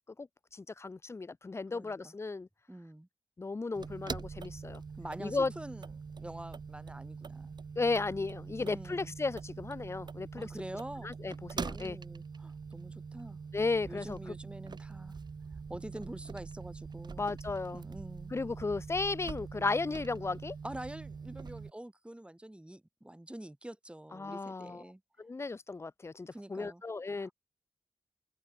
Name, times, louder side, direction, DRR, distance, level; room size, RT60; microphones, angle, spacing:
voice 1, 0.0-2.5 3.4-4.8 5.2-5.5 7.8-10.5 11.0-12.0 13.5-14.3 17.2-17.8 18.3-20.6 24.1-24.8 25.2-27.3, left 3 dB, 35° left, 0.6 m, -35 dB
voice 2, 1.7-2.1 2.7-3.1 5.0-5.9 6.2-7.5 8.6-9.1 10.4-11.1 11.5-13.4 13.9-15.2 15.7-17.2 17.7-18.3 20.6-25.0 26.3-26.8 27.1-27.3, right 1 dB, 15° right, 5.6 m, -46 dB
sound 1, 3.8-21.7, right 5 dB, 60° right, 5.5 m, -44 dB
cardioid pair, 50°, 8 cm